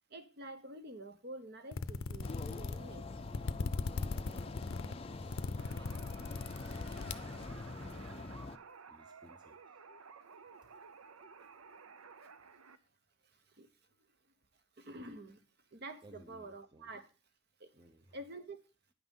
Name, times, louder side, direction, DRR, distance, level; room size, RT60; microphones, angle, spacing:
voice 1, 0.1-3.1 13.6-13.7 14.8-15.4 15.7-17.1 17.6-17.7 18.1-18.6, right 2 dB, 50° right, 9 dB, 1.1 m, -48 dB
sound 1, 1.7-7.9, left 4 dB, 80° left, 0.6 m, -39 dB
wind turbine, 2.2-8.6, left 3 dB, 25° left, 0.5 m, -44 dB
voice 2, 4.0-8.5 8.9-9.8 10.6-10.7 11.4-11.5 16.0-16.9 17.7-18.2, equal, 20° right, 6 dB, 0.8 m, -59 dB
sound 2, 5.6-12.8, right 5 dB, 90° right, 0.7 m, -55 dB
9.6 x 5.9 x 5.5 m, 0.34 s
head